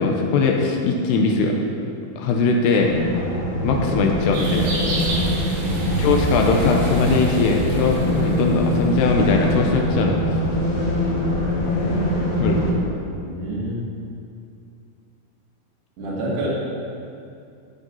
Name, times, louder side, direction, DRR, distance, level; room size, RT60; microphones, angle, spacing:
voice 1, 0.0-1.6 2.2-2.9 3.6-4.7 6.0-10.2 12.4-12.6, left 4 dB, 80° left, 1 dB, 2.7 m, -20 dB
sound 1, 2.8-12.7, equal, 60° left, 1.7 m, -23 dB
sound 2, 4.3-9.3, right 1 dB, 85° right, 5.5 m, -31 dB
voice 2, 5.5-6.1 12.7-13.9 16.0-16.5, right 1 dB, 65° right, -7 dB, 4.7 m, -29 dB
13.0 x 6.7 x 5.4 m, 2.5 s
omnidirectional pair, 5.3 m